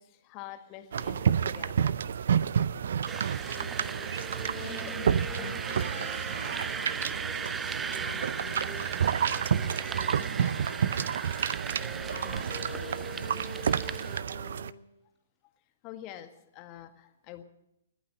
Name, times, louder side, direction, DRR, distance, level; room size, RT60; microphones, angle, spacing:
voice 1, 0.0-2.0 4.6-4.9 15.4-15.5 15.8-17.4, left 12 dB, 30° left, 7 dB, 1.7 m, -46 dB
sound 1, 0.9-14.7, right 8 dB, 60° right, 0.5 m, -30 dB
sound 2, 3.1-14.2, right 6 dB, 10° right, 0.5 m, -38 dB
sound 3, 3.4-8.9 9.5-14.9, left 3 dB, 5° left, 6.1 m, -47 dB
voice 2, 4.5-8.6 8.9-9.4 10.1-11.3 12.0-14.2, left 3 dB, 65° left, 3 dB, 5.2 m, -47 dB
20.5 x 9.1 x 7.7 m, 0.83 s
figure-of-eight pair, 120°, 0 cm